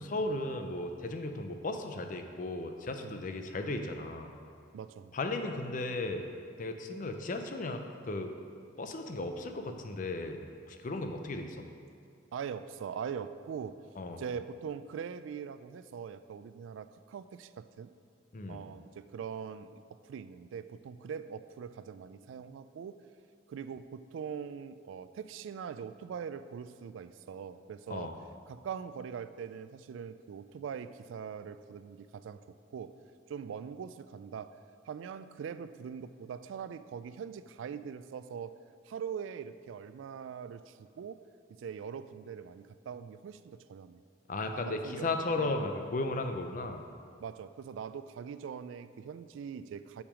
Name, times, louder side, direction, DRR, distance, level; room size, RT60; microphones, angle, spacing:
voice 1, 0.0-4.3 5.1-6.2 6.6-8.3 8.8-10.4 10.7-11.7 14.0-14.2 18.3-18.6 27.9-28.1 44.3-46.9, left 2 dB, 45° left, 5 dB, 0.5 m, -35 dB
voice 2, 4.7-5.1 12.3-13.8 14.2-17.9 18.5-23.0 23.5-28.1 28.5-32.4 32.7-33.0 33.3-34.6 34.9-38.6 38.9-41.3 41.6-44.0 44.5-45.6 47.2-50.0, right 7 dB, 90° right, 13 dB, 0.3 m, -42 dB
6.5 x 5.9 x 5.0 m, 2.3 s
head